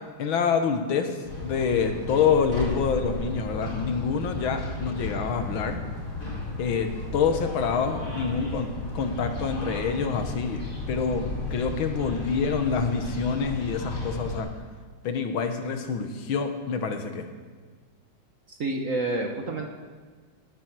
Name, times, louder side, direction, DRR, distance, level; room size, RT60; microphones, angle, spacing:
voice 1, 0.2-5.8 6.6-10.6 10.9-11.3 11.5-14.5 15.0-17.3, left 6 dB, 70° left, 7 dB, 1.8 m, -26 dB
sound 1, 1.2-14.4, left 2 dB, 40° left, 3.2 m, -34 dB
voice 2, 18.5-19.7, right 2 dB, 50° right, 2 dB, 1.2 m, -29 dB
16.0 x 7.4 x 6.1 m, 1.5 s
omnidirectional pair, 2.3 m